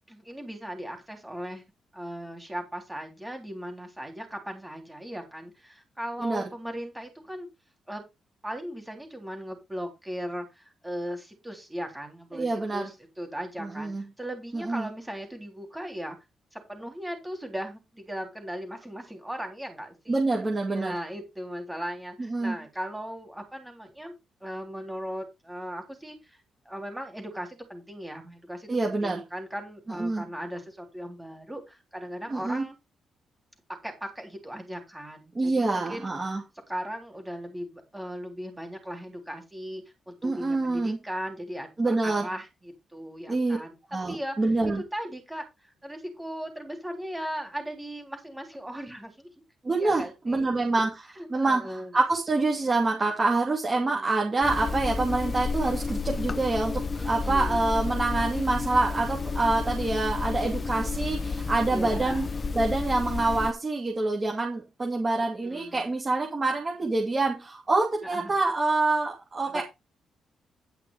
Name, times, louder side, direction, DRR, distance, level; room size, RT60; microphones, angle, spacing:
voice 1, 0.1-1.7 1.9-7.5 7.9-8.0 8.4-16.2 16.5-20.2 20.7-26.4 26.7-32.8 33.8-44.4 44.9-45.4 45.8-49.3 49.8-50.5 51.2-52.0 53.8-54.1 57.0-57.7 61.7-62.3 65.2-65.9 68.0-68.3 69.5-69.6, equal, 5° right, 4 dB, 3.6 m, -38 dB
voice 2, 12.3-12.9 13.6-14.0 14.5-14.9 20.1-21.0 22.3-22.6 28.7-29.2 30.0-30.2 32.3-32.6 35.3-36.4 40.2-41.0 41.8-42.3 43.3-43.6 43.9-44.8 49.6-50.9 51.3-62.3 62.5-69.6, right 3 dB, 25° right, -1 dB, 2.7 m, -26 dB
sound 1, 54.4-63.5, left 4 dB, 35° left, 0.6 m, -31 dB
10.5 x 5.9 x 4.9 m, 0.24 s
cardioid pair, 130°, 0 cm